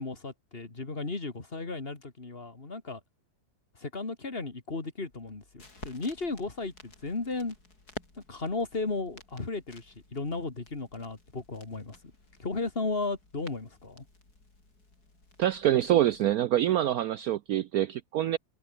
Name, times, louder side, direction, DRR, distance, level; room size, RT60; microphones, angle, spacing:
voice 1, 0.0-3.0 3.8-7.6 8.3-12.0 12.4-14.0, left 3 dB, 30° left, 2.6 m, -35 dB
sound 1, 5.1-16.3, left 2 dB, 55° left, 5.7 m, -52 dB
voice 2, 15.4-18.4, right 12 dB, 65° right, 1.0 m, -25 dB
omnidirectional pair, 1.9 m